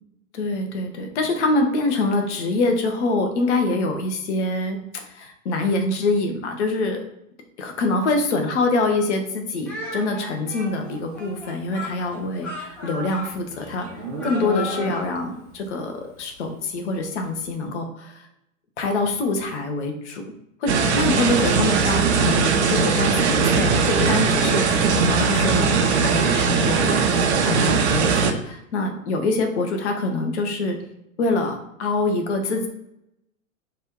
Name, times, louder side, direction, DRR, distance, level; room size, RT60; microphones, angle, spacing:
voice 1, 0.3-7.0 7.6-13.9 14.2-18.2 18.8-20.2 20.6-30.8 31.2-32.7, left 2 dB, 55° left, 4 dB, 0.8 m, -25 dB
Speech, 9.6-15.1, left 2 dB, 5° left, 0.4 m, -36 dB
Livestock farm animals working animals, 12.2-15.4, right 1 dB, 80° right, 1.1 m, -34 dB
sound 1, 20.7-28.3, right 5 dB, 55° right, 0.5 m, -20 dB
3.0 x 2.4 x 3.0 m, 0.82 s
figure-of-eight pair, 110°, 41 cm